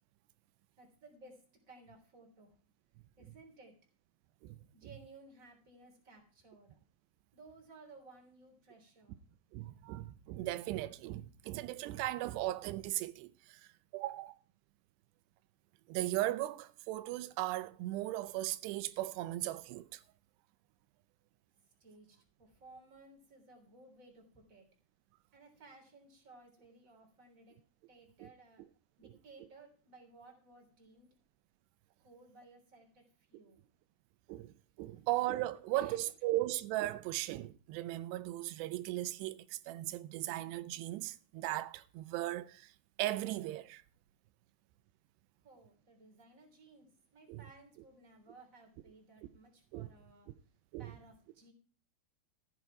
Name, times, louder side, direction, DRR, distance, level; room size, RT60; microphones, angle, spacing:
voice 1, 0.8-1.4 1.7-2.5 3.2-3.7 4.7-6.8 7.3-9.2 21.8-24.7 25.3-27.5 27.9-28.6 29.0-31.1 32.0-33.0 33.3-33.6 34.8-35.1 35.7-36.0 45.4-50.3 50.8-51.5, right 2 dB, 20° right, 3.3 m, -58 dB
voice 2, 9.5-13.6 13.9-14.3 15.9-20.0 28.2-28.3 34.3-42.7 43.0-43.8 47.3-47.4 49.7-49.9 50.7-50.9, right 16 dB, 90° right, 2.8 m, -37 dB
14.5 x 8.2 x 4.7 m
omnidirectional pair, 4.8 m